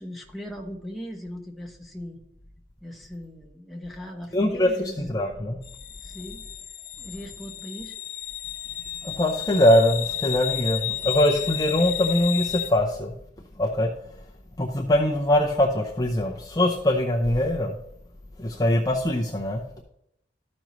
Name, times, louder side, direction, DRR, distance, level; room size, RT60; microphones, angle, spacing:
voice 1, 0.0-2.2 2.8-5.0 6.0-6.4 7.0-8.0, equal, ahead, 0 dB, 1.0 m, -38 dB
voice 2, 4.3-4.7 5.0-5.6 9.0-13.1 13.6-13.9 14.6-17.8 18.4-19.6, left 1 dB, 20° left, -2 dB, 0.6 m, -22 dB
sound 1, 5.6-12.7, left 13 dB, 55° left, 1.1 m, -33 dB
13.5 x 5.3 x 3.1 m, 0.76 s
head